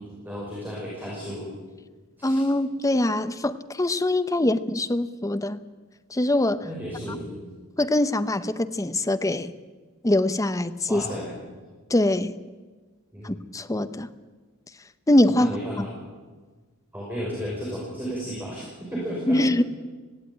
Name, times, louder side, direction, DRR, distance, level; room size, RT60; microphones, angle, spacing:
voice 1, 0.0-1.5 2.2-2.4 4.4-4.5 6.6-7.4 10.9-11.3 13.1-13.4 15.4-15.9 16.9-19.4, equal, 10° right, -5 dB, 5.6 m, -33 dB
voice 2, 2.2-5.6 6.1-6.7 7.1-7.2 7.8-9.5 10.0-11.0 11.9-12.3 13.2-14.1 15.1-15.9 19.3-19.6, left 1 dB, 15° left, 12 dB, 0.7 m, -23 dB
17.5 x 16.0 x 9.2 m, 1.4 s
head